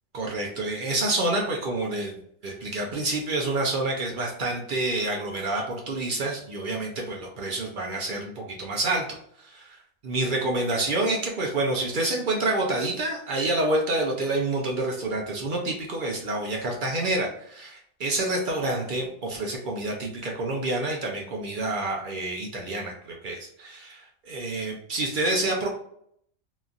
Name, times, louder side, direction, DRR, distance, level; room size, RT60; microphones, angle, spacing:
voice 1, 0.1-9.1 9.4-9.8 10.0-25.7, right 2 dB, 55° right, -1 dB, 0.6 m, -28 dB
2.9 x 2.5 x 2.3 m, 0.68 s
omnidirectional pair, 1.3 m